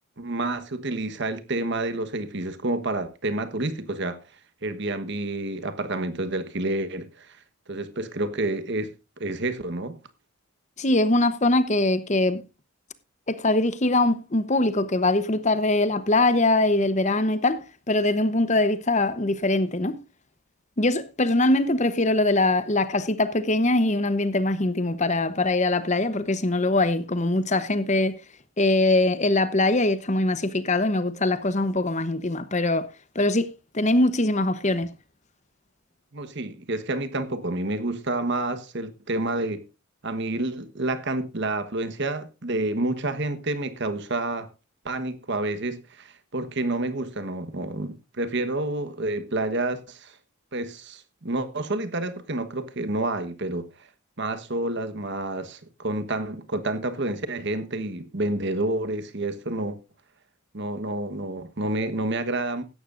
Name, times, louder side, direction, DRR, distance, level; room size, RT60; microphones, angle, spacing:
voice 1, 0.2-4.2 4.6-7.4 7.7-10.0 36.1-39.6 40.0-44.5 44.8-50.2 50.5-53.7 54.2-59.8 60.5-62.6, right 2 dB, 50° right, 1.2 m, -29 dB
voice 2, 10.8-12.4 13.3-20.0 20.8-28.2 28.6-32.9 33.1-34.9, left 2 dB, 30° left, 0.9 m, -22 dB
16.0 x 12.0 x 2.5 m
head